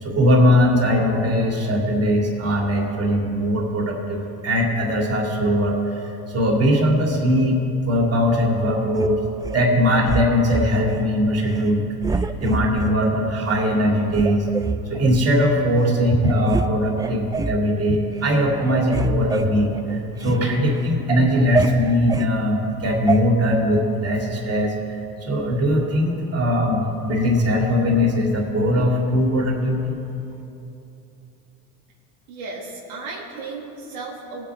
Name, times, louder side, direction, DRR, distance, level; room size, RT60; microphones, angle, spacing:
voice 1, 0.0-7.6 7.8-9.2 9.5-11.8 12.1-14.5 14.9-30.0, equal, 35° right, -1 dB, 2.8 m, -20 dB
sound 1, 8.9-9.6 10.1-11.0 11.5-11.7 12.0-13.0 13.5-13.6 14.1-15.2 15.8-15.9 16.2-16.7 17.0-17.6 18.1-18.3 18.6-20.4 20.8-22.3 23.1-23.2, right 4 dB, 10° right, 0.3 m, -27 dB
voice 2, 32.3-34.5, right 3 dB, 90° right, -4 dB, 2.6 m, -34 dB
18.5 x 8.6 x 3.7 m, 2.8 s
supercardioid pair, 80°, 42 cm